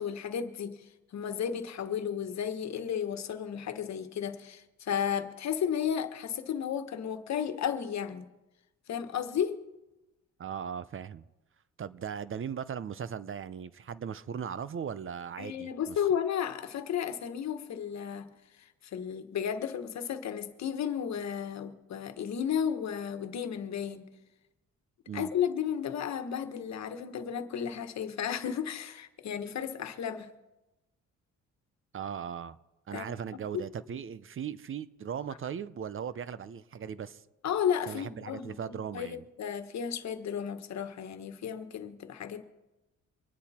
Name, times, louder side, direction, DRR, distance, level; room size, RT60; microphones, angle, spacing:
voice 1, 0.0-8.2 8.9-9.6 15.4-18.3 18.6-24.0 25.1-30.3 32.9-33.1 33.5-33.6 37.4-38.6 38.9-42.4, left 8 dB, 65° left, 1.4 m, -33 dB
voice 2, 10.4-11.2 11.8-16.0 25.1-25.3 31.9-32.6 32.9-37.2 37.9-39.2, right 7 dB, 45° right, 0.7 m, -38 dB
25.0 x 10.5 x 4.3 m
cardioid pair, 90°, 30 cm